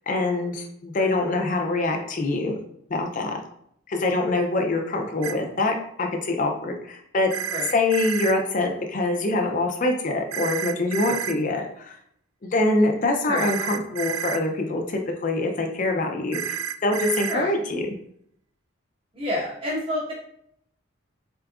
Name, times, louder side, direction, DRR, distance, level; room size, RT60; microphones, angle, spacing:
voice 1, 0.1-2.5 2.9-3.4 3.9-7.3 7.7-12.0 12.4-18.0, left 2 dB, 40° left, 3 dB, 0.5 m, -24 dB
sound 1, 5.2-5.3 7.3-8.3 10.3-11.4 13.4-14.4 16.3-17.4, right 9 dB, 85° right, 0.3 m, -30 dB
voice 2, 19.1-20.1, left 1 dB, 25° right, -6 dB, 1.2 m, -29 dB
3.7 x 3.5 x 2.4 m, 0.71 s
head